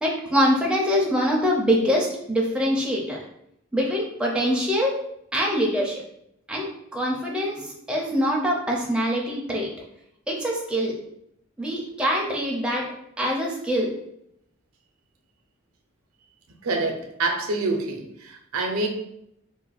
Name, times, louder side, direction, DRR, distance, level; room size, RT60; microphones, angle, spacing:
voice 1, 0.0-3.2 3.7-5.0 5.3-6.0 6.5-9.7 10.3-10.9 11.6-12.9 13.2-13.9, equal, 5° right, -2 dB, 0.4 m, -24 dB
voice 2, 16.6-18.9, right 2 dB, 85° right, 4 dB, 0.5 m, -26 dB
2.4 x 2.2 x 3.9 m, 0.76 s
head